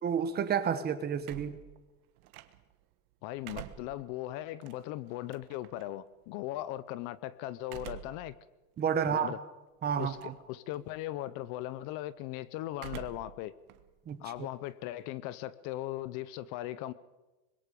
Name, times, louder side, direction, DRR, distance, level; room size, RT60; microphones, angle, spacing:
voice 1, 0.0-1.6 8.8-9.3 9.8-10.3 14.1-14.2, right 8 dB, 25° right, 1.2 m, -30 dB
sound 1, 1.2-2.8 3.2-5.8 7.6-8.3 8.8-8.9 10.0-10.4 10.7-11.2 12.7-13.4 13.7-15.1, right 14 dB, 85° right, 1.6 m, -47 dB
voice 2, 3.2-8.3 9.1-9.4 10.0-13.5 14.2-16.9, left 14 dB, 50° left, 0.7 m, -38 dB
25.0 x 22.0 x 5.3 m
cardioid pair, 165°, 42 cm